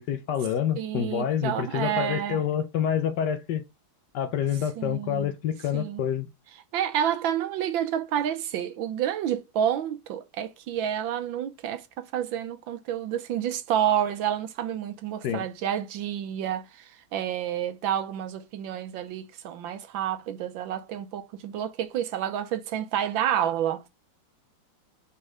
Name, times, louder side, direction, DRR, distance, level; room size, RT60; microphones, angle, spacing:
voice 1, 0.0-3.6 4.1-6.3 15.2-15.5, left 9 dB, 70° left, 1.1 m, -27 dB
voice 2, 0.8-2.4 4.8-5.3 5.7-6.0 6.7-23.9, right 10 dB, 75° right, 1.5 m, -29 dB
4.6 x 4.3 x 4.8 m
omnidirectional pair, 2.2 m